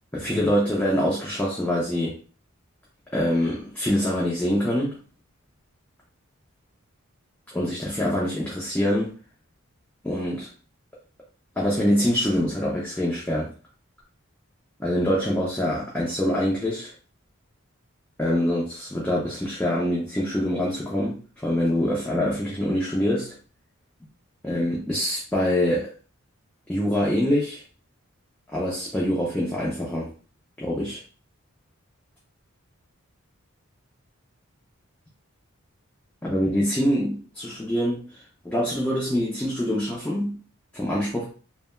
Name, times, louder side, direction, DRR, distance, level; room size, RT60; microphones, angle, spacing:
voice 1, 0.1-2.2 3.1-5.0 7.5-9.1 10.0-10.5 11.6-13.5 14.8-16.9 18.2-23.4 24.4-25.9 26.7-27.6 28.5-30.1 30.6-31.0 36.2-38.1 38.4-40.4 40.7-41.3, equal, 10° left, -6 dB, 0.6 m, -25 dB
3.2 x 2.2 x 2.2 m, 0.38 s
head